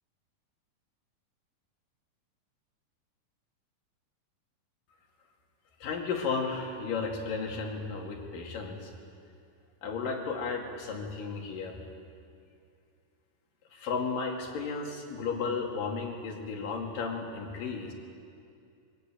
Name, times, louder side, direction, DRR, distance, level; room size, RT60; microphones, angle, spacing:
voice 1, 5.8-8.9 9.8-11.8 13.7-17.9, left 4 dB, 80° left, 1 dB, 3.8 m, -34 dB
23.0 x 20.0 x 9.0 m, 2.5 s
omnidirectional pair, 3.9 m